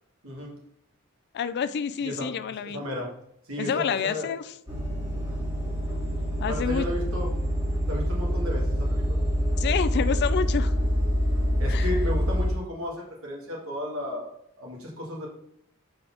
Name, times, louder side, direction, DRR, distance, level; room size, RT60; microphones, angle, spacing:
voice 1, 1.3-2.8 3.6-4.4 6.4-6.9 9.6-10.7 11.7-11.9, left 7 dB, 50° left, 14 dB, 0.3 m, -28 dB
voice 2, 2.6-3.1 3.5-4.3 6.5-7.3 7.9-9.2 11.6-15.3, left 1 dB, 70° right, -1 dB, 2.0 m, -34 dB
sound 1, 4.7-12.5, equal, 20° right, 1.8 m, -26 dB
4.9 x 4.1 x 5.8 m, 0.75 s
head